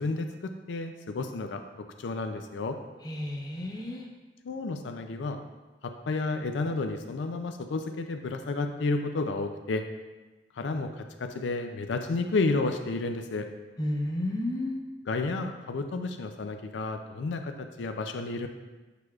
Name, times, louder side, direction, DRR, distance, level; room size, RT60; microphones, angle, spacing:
voice 1, 0.0-2.8 4.4-5.4 5.8-9.8 10.5-13.5 15.0-18.5, left 3 dB, 80° left, 6 dB, 0.4 m, -31 dB
voice 2, 3.0-4.1 13.8-14.8, left 1 dB, 20° left, 0 dB, 0.7 m, -31 dB
6.6 x 6.1 x 2.4 m, 1.2 s
head